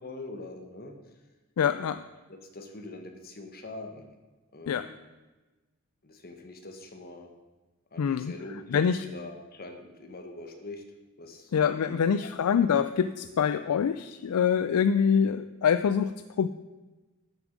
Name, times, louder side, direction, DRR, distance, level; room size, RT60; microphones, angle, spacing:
voice 1, 0.0-0.9 1.7-1.9 2.3-4.0 4.5-5.0 6.0-7.3 7.9-10.8 11.2-12.5, left 2 dB, 45° left, 5 dB, 1.2 m, -43 dB
voice 2, 1.6-2.0 4.7-4.8 8.0-8.3 8.7-9.0 11.5-16.5, left 7 dB, 90° left, 11 dB, 0.4 m, -25 dB
12.0 x 7.2 x 5.2 m, 1.2 s
head